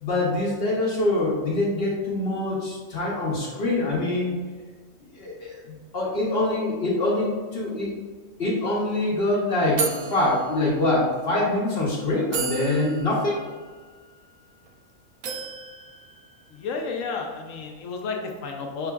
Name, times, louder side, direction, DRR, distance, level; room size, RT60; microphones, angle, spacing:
voice 1, 0.0-4.4 5.1-7.9 8.4-13.4, left 2 dB, 50° left, -4 dB, 1.0 m, -24 dB
sound 1, 8.4-8.5 8.8-9.0 9.8-11.2 11.8-11.9 12.3-14.7 15.2-16.9, right 5 dB, 80° right, 1.1 m, -34 dB
voice 2, 16.5-18.9, left 4 dB, 70° left, 3 dB, 1.0 m, -32 dB
5.9 x 3.6 x 2.3 m, 1.5 s
omnidirectional pair, 1.4 m